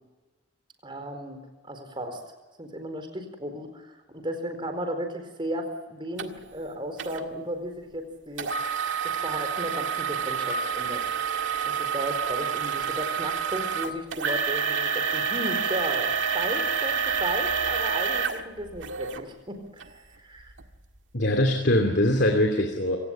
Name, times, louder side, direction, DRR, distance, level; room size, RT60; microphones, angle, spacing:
voice 1, 0.8-2.2 2.6-8.5 9.0-11.0 11.6-20.5, right 1 dB, 25° right, 6 dB, 4.3 m, -35 dB
sound 1, 6.2-6.3 7.0-7.2 8.4-19.2 19.8-19.9 20.5-20.6, right 6 dB, 80° right, 1.9 m, -28 dB
voice 2, 21.1-23.0, left 1 dB, 60° left, 3 dB, 2.8 m, -22 dB
26.5 x 18.0 x 9.0 m, 1.2 s
head